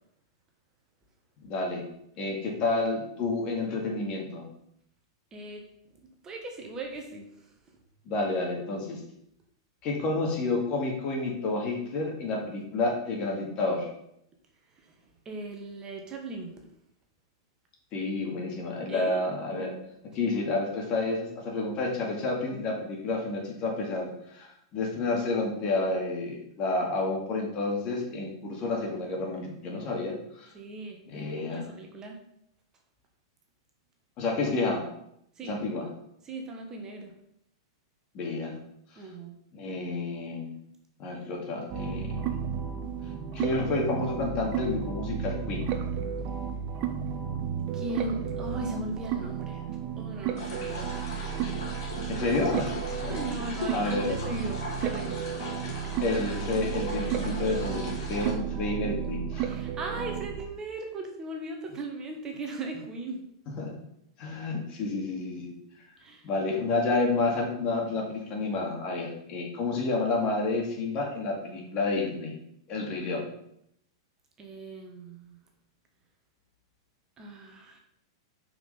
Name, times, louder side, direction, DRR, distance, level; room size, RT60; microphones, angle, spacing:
voice 1, 1.4-1.9 2.2-4.5 8.1-9.0 9.8-13.9 17.9-19.8 20.0-30.5 31.1-31.6 34.2-34.8 35.4-35.9 38.1-38.6 39.5-40.5 41.0-42.4 43.3-45.7 52.1-53.1 53.7-54.1 56.0-59.5 63.6-63.7 64.2-65.5 66.2-72.3 72.7-73.2, left 3 dB, 40° left, 0 dB, 2.3 m, -30 dB
voice 2, 5.3-5.6 6.2-7.5 14.8-14.9 15.2-16.5 18.9-19.2 30.5-32.2 35.4-35.5 36.2-37.1 39.0-39.4 47.7-49.6 50.0-51.0 53.1-55.3 59.4-63.2 66.0-66.3 74.4-75.4 77.2-77.8, right 2 dB, 25° right, 2 dB, 1.4 m, -38 dB
sound 1, 41.7-60.5, right 8 dB, 45° right, 0.9 m, -33 dB
sound 2, 50.4-58.3, left 3 dB, 60° left, 2.8 m, -39 dB
5.8 x 4.9 x 5.6 m, 0.75 s
hypercardioid pair, 115°, 2 cm